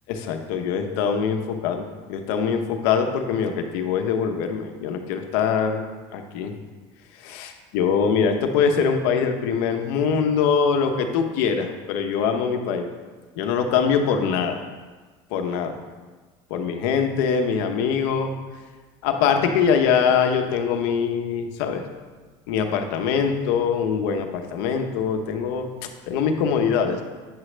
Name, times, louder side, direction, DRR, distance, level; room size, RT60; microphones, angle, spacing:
voice 1, 0.1-5.8 6.1-6.5 7.2-12.9 13.4-14.6 15.3-15.7 16.5-18.3 19.0-21.8 22.5-25.7 26.1-27.0, left 6 dB, 80° left, 5 dB, 0.9 m, -23 dB
9.0 x 6.2 x 3.3 m, 1.4 s
cardioid pair, 150°, 12 cm